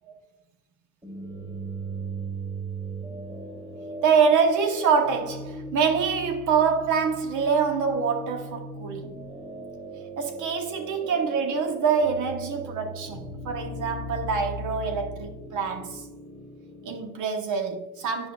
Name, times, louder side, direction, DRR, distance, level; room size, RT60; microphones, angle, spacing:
sound 1, 1.0-17.0, right 1 dB, 15° right, 1.6 m, -38 dB
voice 1, 4.0-9.2 10.2-16.0 16.8-18.3, right 6 dB, 80° right, 1.1 m, -25 dB
8.8 x 5.4 x 2.3 m
cardioid pair, 90°, 30 cm